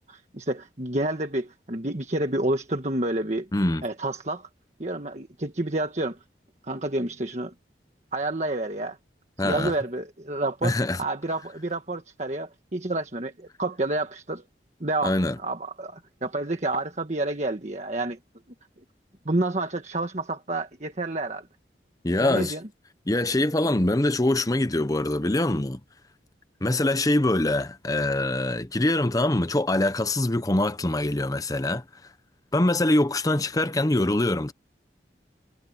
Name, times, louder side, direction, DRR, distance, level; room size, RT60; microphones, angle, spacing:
voice 1, 0.0-3.5 3.8-4.5 4.8-6.2 6.7-7.5 8.1-9.0 9.4-14.4 14.8-18.2 19.2-21.5 22.2-22.6, right 2 dB, 40° right, 1.5 m, -29 dB
voice 2, 3.5-3.8 9.4-9.7 10.6-11.0 15.0-15.4 22.0-22.5 23.1-25.8 26.6-31.8 32.5-34.5, left 1 dB, 20° left, 0.8 m, -24 dB
head